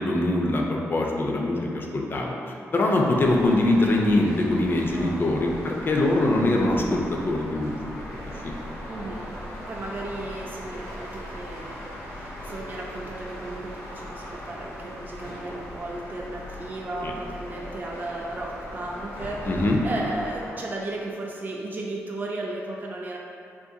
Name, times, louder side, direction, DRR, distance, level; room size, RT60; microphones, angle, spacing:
voice 1, 0.0-2.4 2.7-7.8 8.4-8.5 17.0-17.1 19.5-19.8, left 2 dB, 40° left, 0 dB, 0.4 m, -23 dB
sound 1, 3.2-20.5, equal, 80° left, 0.8 m, -39 dB
voice 2, 4.9-5.5 5.7-5.8 8.9-9.3 9.7-23.2, right 2 dB, 35° right, -2 dB, 0.3 m, -35 dB
2.5 x 2.3 x 2.7 m, 2.5 s
cardioid pair, 65°, 6 cm